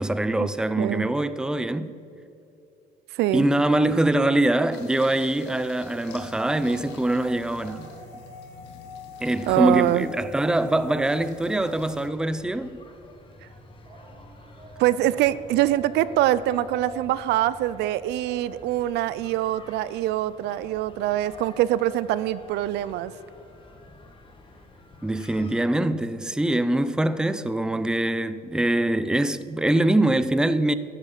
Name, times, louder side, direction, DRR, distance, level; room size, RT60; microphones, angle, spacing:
voice 1, 0.0-1.9 3.3-7.9 9.2-12.8 25.0-30.7, right 1 dB, 5° right, 0.5 m, -23 dB
voice 2, 0.8-1.1 3.1-3.5 9.5-10.1 14.8-23.1, right 14 dB, 80° right, 0.5 m, -24 dB
sound 1, 4.7-12.1, left 5 dB, 90° left, 1.8 m, -47 dB
sound 2, 5.9-12.0 13.8-19.2 20.5-22.4, equal, 35° right, 1.9 m, -46 dB
sound 3, 11.7-25.6, left 2 dB, 30° left, 1.9 m, -49 dB
13.5 x 8.0 x 7.3 m
cardioid pair, 110°, 17 cm